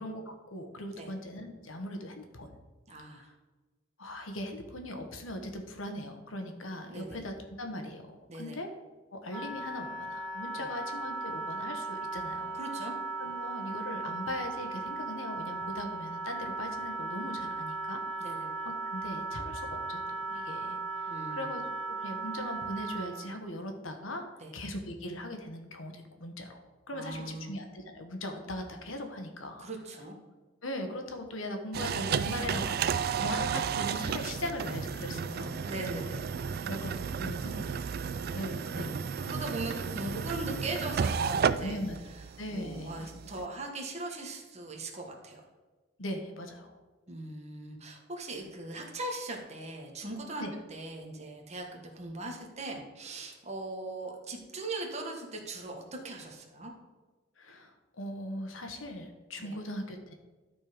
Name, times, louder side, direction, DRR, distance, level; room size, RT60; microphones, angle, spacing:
voice 1, 0.0-2.5 3.1-3.3 4.0-8.7 9.1-12.6 13.2-18.0 18.8-24.2 24.5-29.7 30.6-36.0 36.5-37.8 38.3-39.0 41.6-42.0 42.4-43.1 46.0-46.8 50.4-50.5 57.4-60.1, left 1 dB, 85° left, 5 dB, 1.4 m, -40 dB
voice 2, 2.9-3.3 6.9-7.2 8.3-8.6 10.5-10.7 12.5-12.9 18.2-18.5 21.1-21.5 24.4-24.5 26.9-27.5 29.6-30.2 33.1-33.3 35.6-36.2 38.6-38.9 39.2-42.2 42.5-45.4 47.1-50.4 50.7-51.7 51.9-56.7 59.4-59.5, right 2 dB, 35° right, 1 dB, 1.4 m, -40 dB
Wind instrument woodwind instrument, 9.3-23.4, right 3 dB, 5° left, 1.6 m, -37 dB
sound 1, 31.7-43.5, right 6 dB, 50° right, 0.3 m, -33 dB
12.0 x 4.4 x 5.1 m, 1.3 s
head